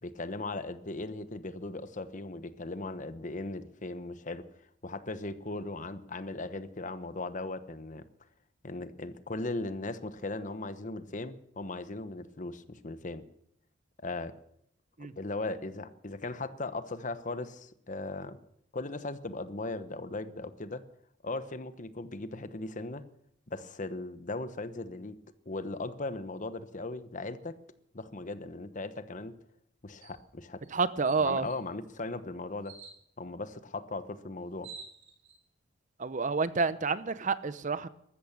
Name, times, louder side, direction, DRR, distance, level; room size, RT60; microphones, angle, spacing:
voice 1, 0.0-4.5 4.8-8.0 8.6-13.2 14.0-14.3 15.2-18.4 18.7-20.8 21.2-23.0 23.5-25.2 25.5-27.6 27.9-29.4 29.8-30.6 31.2-32.8 33.2-34.7, left 2 dB, 40° left, 1.0 m, -38 dB
sound 1, 30.0-30.2 30.6-30.7 31.0-31.6 32.6-33.0 34.1-34.2 34.4-35.4, right 5 dB, 80° right, 4.7 m, -48 dB
voice 2, 30.7-31.5 36.0-37.9, right 4 dB, 40° right, 0.7 m, -29 dB
14.0 x 13.5 x 7.3 m
head